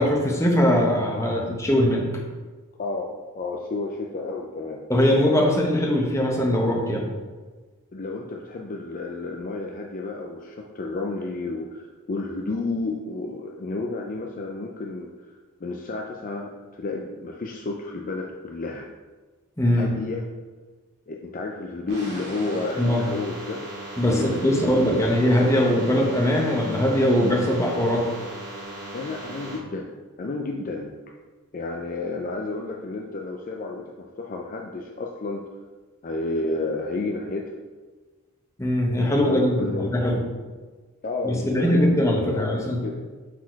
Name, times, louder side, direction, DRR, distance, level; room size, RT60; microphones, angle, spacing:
voice 1, 0.0-2.0 4.9-7.1 19.6-19.9 22.8-23.1 24.0-28.0 38.6-40.2 41.2-42.8, left 1 dB, 15° left, 0 dB, 1.0 m, -21 dB
voice 2, 2.8-4.8 7.9-18.9 19.7-20.2 21.1-23.6 24.1-24.8 28.9-29.9 30.2-30.9 31.5-35.4 36.0-37.4 39.2-40.0 41.0-43.0, left 3 dB, 40° left, 1 dB, 0.4 m, -31 dB
sound 1, 21.9-29.6, right 1 dB, 50° right, 2.0 m, -38 dB
6.3 x 4.2 x 4.6 m, 1.4 s
head